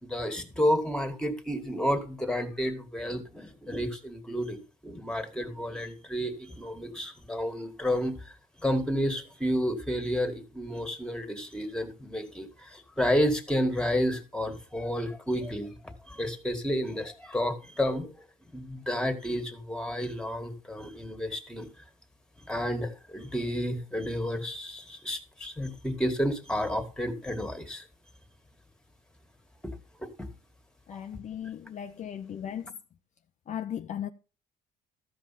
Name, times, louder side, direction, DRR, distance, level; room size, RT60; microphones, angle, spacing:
voice 1, 0.0-8.2 8.6-18.2 18.5-21.7 22.5-27.8 29.6-29.7 30.0-30.3 30.9-31.0, equal, 5° left, 1.9 m, -31 dB
voice 2, 30.9-32.6 33.5-34.1, left 9 dB, 45° left, 0.6 m, -36 dB
14.0 x 5.4 x 5.8 m
cardioid pair, 110°, 17 cm